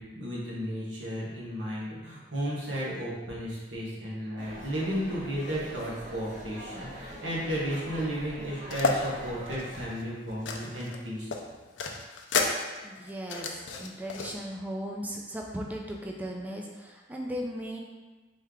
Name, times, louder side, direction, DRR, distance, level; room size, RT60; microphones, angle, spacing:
voice 1, 0.0-11.3, equal, 85° right, -6 dB, 1.4 m, -34 dB
sound 1, 4.4-9.8, equal, 45° right, 1.1 m, -43 dB
sound 2, 8.7-9.0 9.5-11.0 11.3-14.3, left 4 dB, 85° left, 0.5 m, -31 dB
voice 2, 12.8-17.8, equal, 10° right, 0 dB, 0.4 m, -37 dB
4.3 x 3.3 x 3.7 m, 1.2 s
head